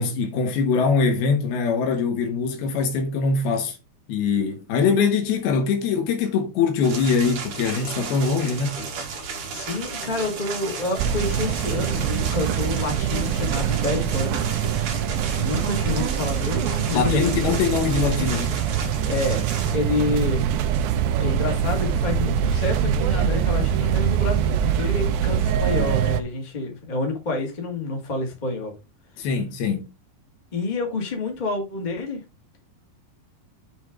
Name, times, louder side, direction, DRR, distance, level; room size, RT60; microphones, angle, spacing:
voice 1, 0.0-3.8 4.1-8.8 16.9-18.6 29.2-29.9, left 5 dB, 85° left, 3.4 m, -23 dB
sound 1, 6.8-19.8, right 5 dB, 60° right, 3.1 m, -34 dB
voice 2, 9.5-14.4 15.4-17.6 19.0-19.4 19.7-28.7 30.5-32.2, left 3 dB, 60° left, 0.4 m, -28 dB
sound 2, 11.0-26.2, right 8 dB, 80° right, 2.4 m, -24 dB
7.9 x 3.6 x 5.0 m
omnidirectional pair, 4.4 m